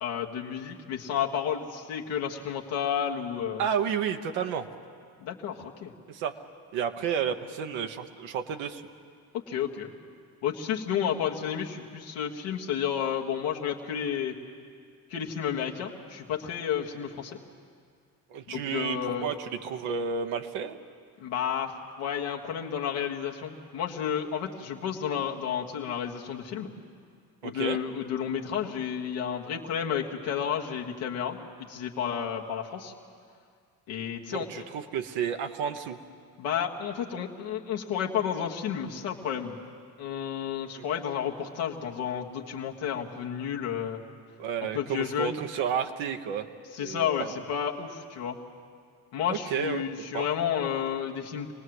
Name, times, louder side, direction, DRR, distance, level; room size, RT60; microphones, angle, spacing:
voice 1, 0.0-3.6 5.2-5.9 9.3-9.9 10.4-14.4 15.1-17.4 18.5-19.3 21.2-26.7 27.4-31.4 31.7-32.9 33.9-34.7 36.4-39.6 40.0-44.0 44.7-45.4 46.7-48.4 49.1-51.5, left 8 dB, 90° left, 0 dB, 1.7 m, -31 dB
voice 2, 3.6-4.7 6.1-6.3 6.7-8.8 18.3-20.8 27.4-27.8 34.3-36.0 40.7-40.8 44.4-46.5 46.8-47.4 49.3-49.8 50.1-50.3, right 7 dB, 85° right, 6 dB, 1.2 m, -31 dB
26.5 x 19.0 x 7.9 m, 2.2 s
supercardioid pair, 55°, 45 cm